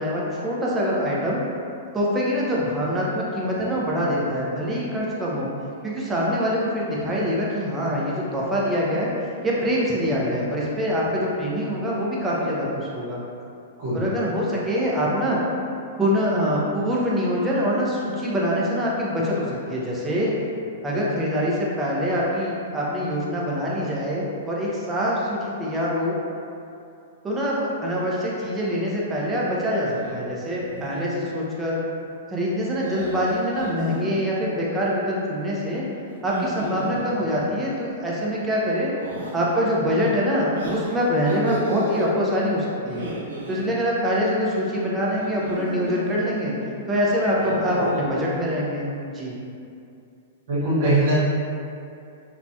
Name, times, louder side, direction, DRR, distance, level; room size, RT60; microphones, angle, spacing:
voice 1, 0.0-1.4 1.9-5.5 5.8-13.2 13.9-15.4 16.0-20.3 20.8-26.2 27.2-31.8 32.3-35.8 36.2-38.9 39.3-43.1 43.5-46.5 46.9-48.9 49.1-49.3, equal, 15° right, -5 dB, 0.6 m, -24 dB
sound 1, 29.9-30.2 30.6-31.1 32.8-34.1 36.1-37.5 39.0-39.4 40.6-42.1 42.8-43.6 45.1-46.2 47.2-48.2, right 1 dB, 90° right, 0.7 m, -34 dB
voice 2, 50.5-51.2, right 1 dB, 60° right, -10 dB, 1.1 m, -21 dB
3.0 x 2.3 x 2.6 m, 2.6 s
hypercardioid pair, 135°, 0 cm